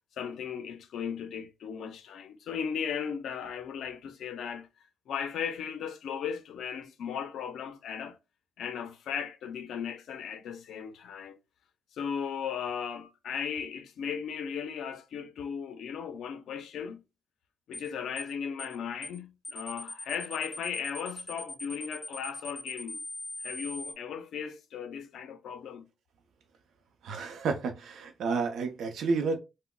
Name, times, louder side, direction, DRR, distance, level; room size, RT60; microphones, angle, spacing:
voice 1, 0.2-4.7 5.1-8.2 8.6-11.4 11.9-17.0 17.7-23.0 23.4-25.9, left 7 dB, 85° left, 0.5 m, -36 dB
sound 1, 17.7-17.9 18.2-18.3 18.6-18.8 19.0-19.2 19.4-23.9, left 2 dB, 15° left, 0.5 m, -40 dB
voice 2, 27.0-29.4, right 4 dB, 80° right, 0.5 m, -30 dB
3.7 x 2.1 x 2.2 m
cardioid pair, 85°, 0 cm